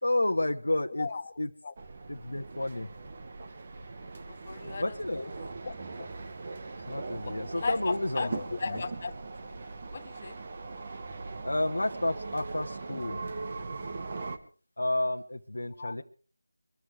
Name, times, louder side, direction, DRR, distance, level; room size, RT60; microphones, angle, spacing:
voice 1, 0.0-1.1 1.4-1.5 2.1-2.9 4.8-5.3 6.9-8.3 8.7-8.8 11.4-13.2 14.8-16.0, left 1 dB, 85° left, 5 dB, 1.1 m, -30 dB
voice 2, 1.0-1.3 1.6-1.7 4.3-5.0 5.4-6.1 7.2-9.1 9.9-10.4 15.8-16.0, left 4 dB, 30° left, 9 dB, 0.9 m, -36 dB
sound 1, 1.8-14.4, right 3 dB, 30° right, 1.1 m, -40 dB
23.5 x 13.0 x 3.3 m, 0.40 s
figure-of-eight pair, 175°, 0 cm